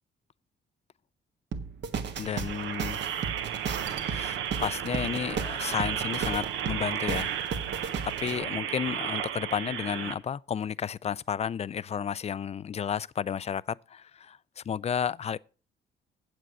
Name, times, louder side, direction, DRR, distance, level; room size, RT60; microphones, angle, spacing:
sound 1, 1.5-8.3, right 5 dB, 65° right, 1.4 m, -35 dB
sound 2, 2.1-10.1, right 9 dB, 90° right, 1.0 m, -34 dB
voice 1, 2.2-3.0 4.0-7.3 7.6-15.4, left 8 dB, 35° left, 0.4 m, -32 dB
8.1 x 7.7 x 6.2 m
cardioid pair, 90°, 20 cm